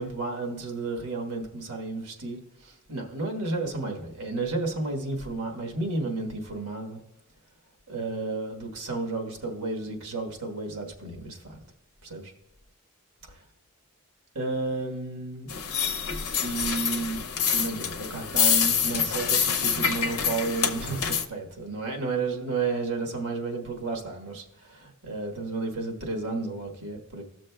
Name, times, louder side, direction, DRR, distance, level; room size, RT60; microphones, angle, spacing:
voice 1, 0.0-7.0 7.9-11.6 12.0-12.3 14.3-15.5 16.4-27.2, right 3 dB, 85° right, 2 dB, 1.3 m, -32 dB
sound 1, 15.5-21.3, left 7 dB, 85° left, 0.7 m, -26 dB
15.0 x 6.3 x 2.2 m, 0.85 s
head